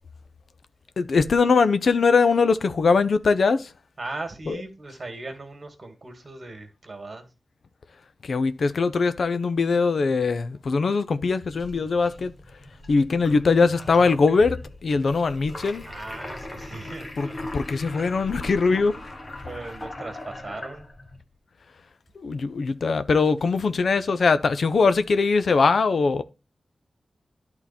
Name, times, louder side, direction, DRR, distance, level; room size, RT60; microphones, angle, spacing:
voice 1, 1.0-3.7 4.5-4.6 8.2-12.3 12.9-15.8 17.2-17.3 17.5-19.0 22.2-26.2, left 4 dB, 70° left, 0.6 m, -21 dB
voice 2, 4.0-7.3 15.8-17.4 19.4-20.9, right 2 dB, 45° right, 2.0 m, -38 dB
sound 1, 11.4-21.2, left 1 dB, 35° left, 1.6 m, -40 dB
11.5 x 3.9 x 4.3 m
wide cardioid pair, 90°, 0 cm